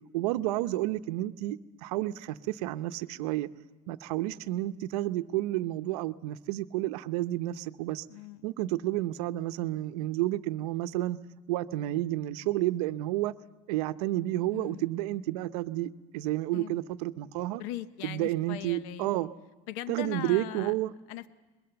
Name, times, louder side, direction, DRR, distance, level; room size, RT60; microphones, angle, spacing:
voice 1, 0.1-3.5 3.9-8.1 8.4-11.2 11.5-13.3 13.7-17.6 18.0-19.3 19.9-20.9, right 15 dB, 75° right, 12 dB, 0.8 m, -31 dB
voice 2, 8.1-8.5 14.5-15.0 16.5-16.8 17.2-19.1 19.7-20.7 21.1-21.3, left 14 dB, 55° left, 13 dB, 0.8 m, -40 dB
24.0 x 22.0 x 7.0 m, 1.2 s
cardioid pair, 180°, 20 cm